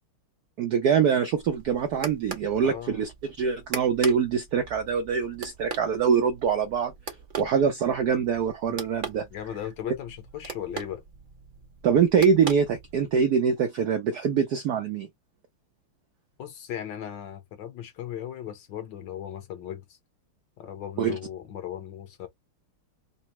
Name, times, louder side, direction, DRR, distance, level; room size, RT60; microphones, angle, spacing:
voice 1, 0.6-3.1 3.4-6.9 7.4-9.3 11.8-15.1 21.0-21.2, right 7 dB, 75° right, 0.9 m, -24 dB
sound 1, 1.3-13.3, right 5 dB, 50° right, 0.6 m, -41 dB
voice 2, 2.6-3.0 8.7-8.8 9.3-11.0 16.4-20.0 20.6-22.3, left 10 dB, 65° left, 1.3 m, -37 dB
4.0 x 2.0 x 4.1 m
omnidirectional pair, 2.3 m